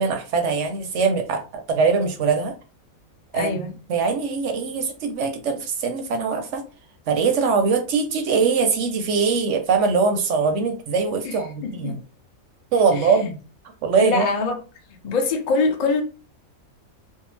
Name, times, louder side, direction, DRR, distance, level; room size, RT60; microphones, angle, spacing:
voice 1, 0.0-1.4 1.7-2.5 3.3-6.6 7.1-12.0 12.7-13.4 13.8-14.3, right 5 dB, 65° right, 0.8 m, -22 dB
voice 2, 3.3-3.7 11.2-12.0 12.9-13.3 14.0-14.6 15.0-16.0, left 3 dB, 55° left, 0.4 m, -24 dB
2.6 x 2.0 x 3.1 m
omnidirectional pair, 1.5 m